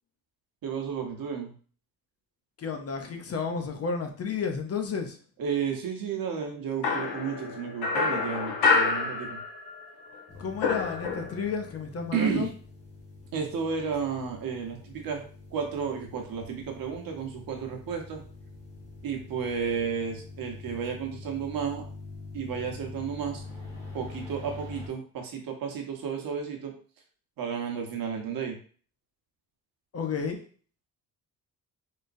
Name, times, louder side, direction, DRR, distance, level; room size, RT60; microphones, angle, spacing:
voice 1, 0.6-1.5 5.4-9.4 12.1-12.5 13.3-15.2 15.5-18.2 19.0-21.8 22.3-23.4 23.9-26.7 27.4-28.6, right 6 dB, 70° right, 2 dB, 1.0 m, -32 dB
voice 2, 2.6-5.2 10.4-12.5 29.9-30.5, left 5 dB, 40° left, 5 dB, 0.6 m, -32 dB
sound 1, 6.8-9.9 10.1-11.6, left 4 dB, 90° left, 0.9 m, -27 dB
sound 2, 10.3-24.9, left 3 dB, 20° left, 1.5 m, -45 dB
3.9 x 3.7 x 2.6 m, 0.42 s
wide cardioid pair, 165°, 36 cm